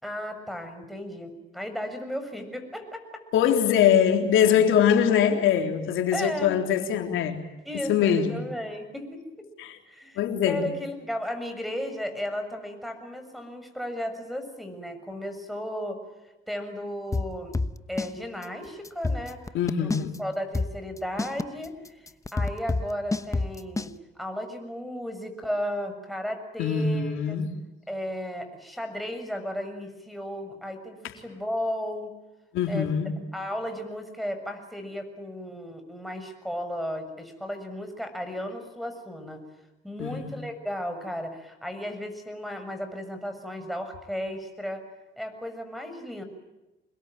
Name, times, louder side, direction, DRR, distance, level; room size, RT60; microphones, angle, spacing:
voice 1, 0.0-3.0 5.8-5.9 6.1-6.5 7.6-9.2 9.8-16.0 16.5-17.6 17.9-19.4 19.8-19.9 20.2-27.4 27.9-32.1 32.7-32.9 33.3-39.4 39.8-44.8 45.2-46.2, equal, ahead, 5 dB, 6.8 m, -34 dB
voice 2, 3.3-7.4 7.9-8.4 9.6-9.8 10.2-10.7 19.5-20.1 26.6-27.5 32.5-33.1 40.0-40.3, left 8 dB, 85° left, 5 dB, 3.7 m, -23 dB
sound 1, 17.1-18.1 18.4-18.5 18.9-20.2 20.5-23.9, left 3 dB, 15° left, 1.1 m, -28 dB
27.0 x 21.5 x 9.1 m, 1.0 s
cardioid pair, 90°, 20 cm